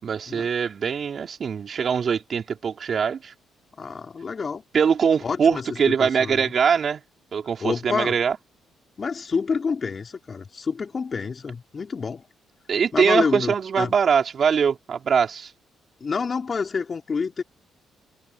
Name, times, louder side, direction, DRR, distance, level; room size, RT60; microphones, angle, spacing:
voice 1, 0.0-3.3 4.7-7.0 7.3-8.4 12.7-15.5, right 6 dB, 50° right, 4.3 m, -22 dB
voice 2, 3.7-4.6 5.2-6.5 7.6-8.2 9.0-12.2 12.9-13.9 16.0-17.4, left 5 dB, 40° left, 4.4 m, -28 dB
open air
cardioid pair, 90°, 0 cm